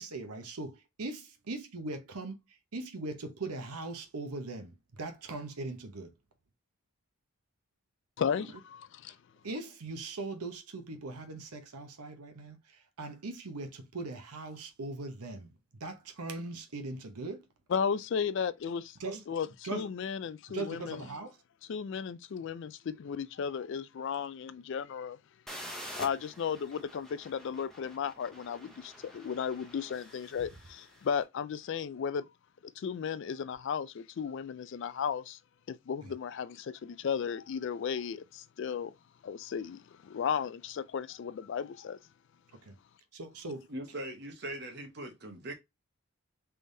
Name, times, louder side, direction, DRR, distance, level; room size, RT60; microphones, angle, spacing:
voice 1, 0.0-6.1 9.1-9.2 9.4-15.5 15.8-17.4 19.0-19.2 19.6-19.9 20.5-21.4 36.0-36.1 42.6-42.7 43.1-43.7, right 2 dB, 90° right, 0.9 m, -40 dB
voice 2, 8.2-9.2 17.7-19.0 19.3-21.0 21.7-25.2 26.0-32.3 32.6-35.4 35.7-38.9 39.2-42.0, left 7 dB, 55° left, 0.3 m, -35 dB
sound 1, 25.5-31.1, equal, ahead, 0.6 m, -48 dB
voice 3, 43.7-45.5, right 1 dB, 45° right, 1.0 m, -40 dB
3.4 x 3.4 x 2.7 m
head